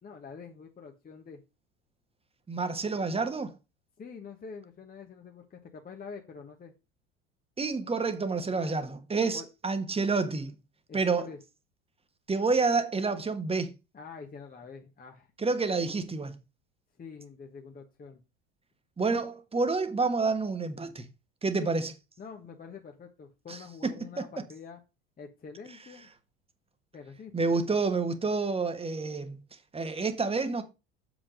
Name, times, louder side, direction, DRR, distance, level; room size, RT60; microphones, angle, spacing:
voice 1, 0.0-1.4 4.0-6.7 8.5-8.8 9.3-9.5 10.9-11.4 13.9-15.3 17.0-18.2 21.5-21.7 22.2-24.8 25.2-26.1 26.9-27.3, left 5 dB, 25° left, 1.3 m, -46 dB
voice 2, 2.5-3.5 7.6-10.5 10.9-11.3 12.3-13.7 15.4-16.3 19.0-21.1 21.4-21.9 23.5-23.9 27.3-29.4 29.7-30.6, right 4 dB, 15° right, 1.4 m, -28 dB
7.2 x 5.1 x 5.1 m
hypercardioid pair, 75°, 34 cm